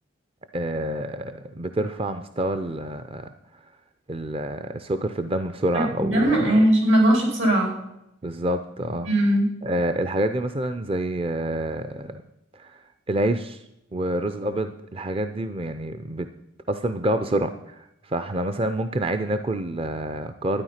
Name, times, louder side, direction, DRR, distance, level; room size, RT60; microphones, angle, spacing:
voice 1, 0.5-3.3 4.1-6.4 8.2-9.1 9.6-12.2 12.5-13.6 13.9-16.3 16.7-20.6, right 1 dB, 30° right, 9 dB, 0.5 m, -27 dB
voice 2, 5.7-7.8 9.0-9.5, right 1 dB, 75° right, 1 dB, 4.4 m, -20 dB
12.0 x 9.6 x 5.7 m, 0.85 s
head